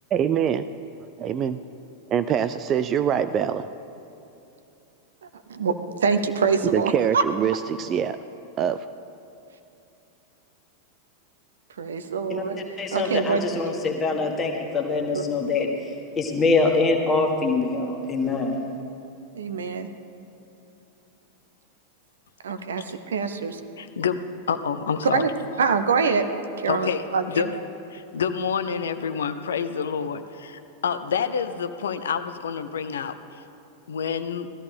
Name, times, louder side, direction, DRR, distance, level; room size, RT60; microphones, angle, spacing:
voice 1, 0.1-0.6 1.2-1.6 2.1-3.7 6.7-8.2 8.6-8.9, right 8 dB, 30° right, 11 dB, 0.4 m, -24 dB
voice 2, 6.0-7.2 11.8-12.6 12.9-13.4 15.1-15.2 19.3-19.9 22.4-23.6 25.1-25.3 25.6-26.2 26.6-27.5, right 5 dB, 65° right, 8 dB, 0.8 m, -24 dB
voice 3, 12.8-18.6, left 3 dB, 20° left, 1 dB, 1.6 m, -24 dB
voice 4, 23.8-24.2 24.5-25.2 26.7-27.0 27.3-27.5 27.9-33.4 33.9-34.5, left 7 dB, 65° left, 10 dB, 0.5 m, -28 dB
18.5 x 13.5 x 3.5 m, 2.8 s
figure-of-eight pair, 90°, 0 cm